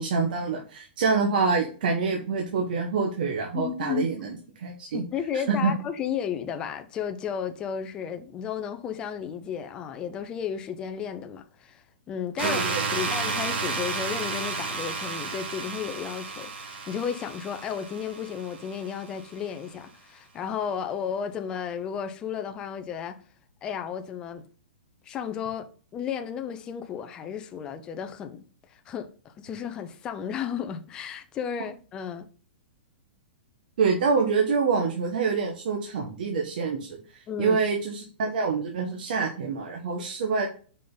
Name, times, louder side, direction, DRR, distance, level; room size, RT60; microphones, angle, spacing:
voice 1, 0.0-4.3 4.6-5.0 5.5-5.7 12.4-12.8 33.8-40.5, right 5 dB, 50° right, 1.3 m, -26 dB
voice 2, 3.5-4.1 4.9-12.6 12.9-23.2 23.6-24.4 25.0-28.4 28.7-32.3 37.3-37.6, left 8 dB, 15° left, 0.5 m, -33 dB
sound 1, 12.4-19.2, right 4 dB, 90° right, 3.3 m, -32 dB
5.7 x 5.1 x 3.9 m
hypercardioid pair, 170°, 6 cm